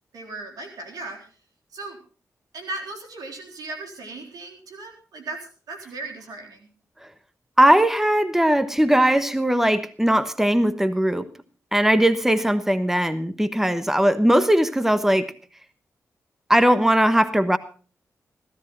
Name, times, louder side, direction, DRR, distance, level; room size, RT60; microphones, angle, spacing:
voice 1, 0.1-1.3 1.7-2.0 2.5-6.7, right 2 dB, 80° right, 2 dB, 3.7 m, -37 dB
voice 2, 7.6-11.2 11.7-15.3 16.5-17.6, right 1 dB, 5° right, 12 dB, 1.1 m, -19 dB
16.0 x 13.0 x 4.3 m, 0.39 s
cardioid pair, 55°, 6 cm